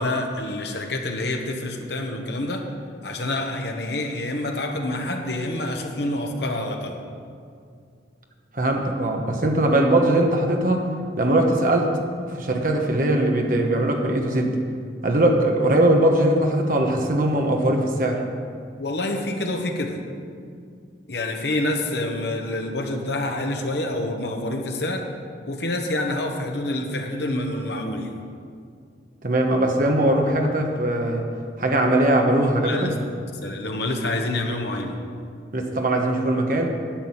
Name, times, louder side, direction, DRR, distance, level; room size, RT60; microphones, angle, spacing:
voice 1, 0.0-2.7 3.0-7.0 18.8-20.0 21.1-25.1 25.5-28.1 32.6-33.0 33.3-35.0, left 1 dB, 70° left, 3 dB, 1.2 m, -27 dB
voice 2, 8.5-10.8 11.2-11.9 12.2-14.6 15.0-18.2 29.2-31.3 31.6-32.9 35.5-36.7, right 1 dB, 50° right, 2 dB, 1.2 m, -20 dB
10.5 x 6.1 x 8.8 m, 2.3 s
head